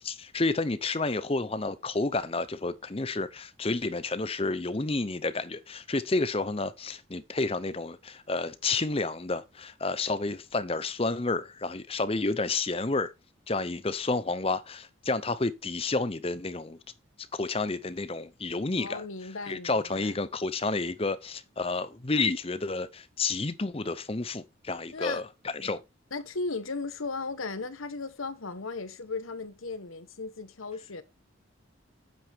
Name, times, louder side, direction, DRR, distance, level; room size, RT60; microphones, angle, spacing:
voice 1, 0.0-13.1 13.5-16.8 17.3-19.0 19.5-25.3 25.5-25.8, left 3 dB, 30° left, 0.7 m, -30 dB
voice 2, 18.8-20.1 24.9-25.2 25.6-25.7 26.1-31.0, left 3 dB, 90° left, 1.2 m, -36 dB
9.0 x 7.9 x 3.6 m
head